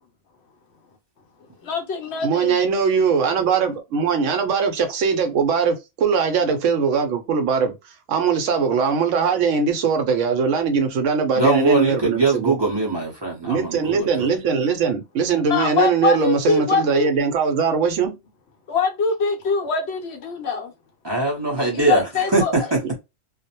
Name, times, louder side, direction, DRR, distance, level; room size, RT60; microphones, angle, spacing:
voice 1, 1.6-2.6 15.5-17.1 18.7-20.7 21.7-22.5, left 4 dB, 65° left, 0.8 m, -23 dB
voice 2, 2.2-7.7 8.1-12.5 13.4-18.2, right 6 dB, 75° right, 0.9 m, -21 dB
voice 3, 11.3-14.3 21.0-22.0 22.3-22.8, right 3 dB, 30° right, 0.5 m, -21 dB
2.3 x 2.0 x 2.8 m
omnidirectional pair, 1.3 m